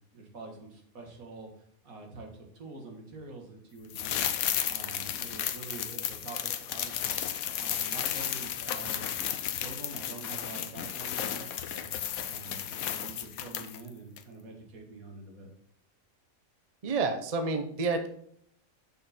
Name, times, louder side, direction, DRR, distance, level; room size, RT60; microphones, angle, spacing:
voice 1, 0.1-6.9 7.5-9.1 9.4-15.5, right 3 dB, 75° right, 2 dB, 2.2 m, -46 dB
sound 1, 3.9-13.9 14.2-14.3, left 10 dB, 80° left, 1.1 m, -33 dB
voice 2, 16.8-18.1, right 4 dB, 30° right, 6 dB, 0.9 m, -29 dB
7.0 x 6.5 x 4.3 m, 0.65 s
omnidirectional pair, 1.5 m